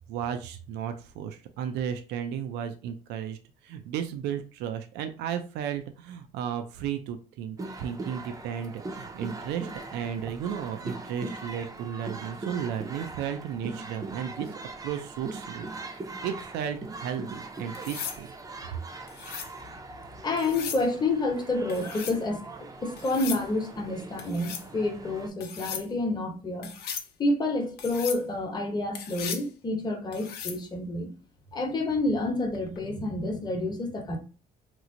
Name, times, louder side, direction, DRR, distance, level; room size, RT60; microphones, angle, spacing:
voice 1, 0.1-3.4 3.6-14.5 14.8-18.3, right 8 dB, 85° right, 0.4 m, -34 dB
sound 1, 7.6-25.3, right 3 dB, 20° right, 0.5 m, -41 dB
sound 2, 17.7-18.2 19.1-19.5 20.4-20.9 21.7-22.2 23.0-23.4 24.2-24.7 25.4-25.9 26.6-27.1 27.8-28.2 28.9-29.5 30.1-30.6 32.5-32.8, left 7 dB, 75° left, 0.6 m, -37 dB
voice 2, 20.2-22.4 22.8-26.7 27.2-31.1 31.5-34.2, left 2 dB, 25° left, 0.9 m, -29 dB
3.0 x 2.0 x 3.7 m
cardioid pair, 110°, 17 cm